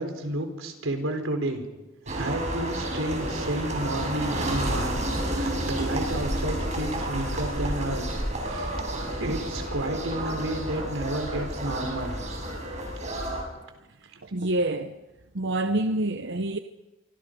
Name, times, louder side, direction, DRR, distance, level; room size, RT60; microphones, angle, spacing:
voice 1, 0.0-1.6 2.1-5.0 5.3-8.0 8.4-8.8 9.1-12.2, right 1 dB, 90° right, 4.1 m, -31 dB
sound 1, 2.1-13.4, right 1 dB, 35° right, 6.2 m, -30 dB
voice 2, 14.2-15.0 15.3-16.6, right 1 dB, 60° right, 0.9 m, -27 dB
27.5 x 24.5 x 5.3 m
head